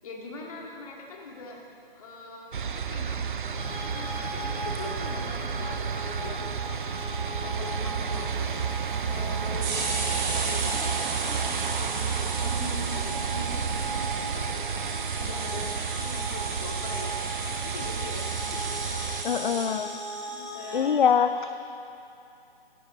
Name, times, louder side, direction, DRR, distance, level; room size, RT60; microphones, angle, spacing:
voice 1, 0.0-1.6 2.0-8.6 9.1-14.7 15.2-17.1 17.5-18.7 20.3-21.0, left 3 dB, 35° left, -1 dB, 2.2 m, -42 dB
sound 1, 2.5-19.2, right 6 dB, 55° right, 0.7 m, -31 dB
sound 2, 3.6-20.8, right 1 dB, ahead, 1.0 m, -39 dB
sound 3, 4.7-5.3 5.6-5.7 5.8-5.9 6.1-6.7 7.1-7.2 7.4-7.7 8.6-8.7 9.5-19.6, right 3 dB, 15° right, 1.5 m, -35 dB
voice 2, 19.2-19.9 20.7-21.5, left 7 dB, 55° left, 11 dB, 0.5 m, -23 dB
16.0 x 15.0 x 4.0 m, 2.7 s
figure-of-eight pair, 150°, 31 cm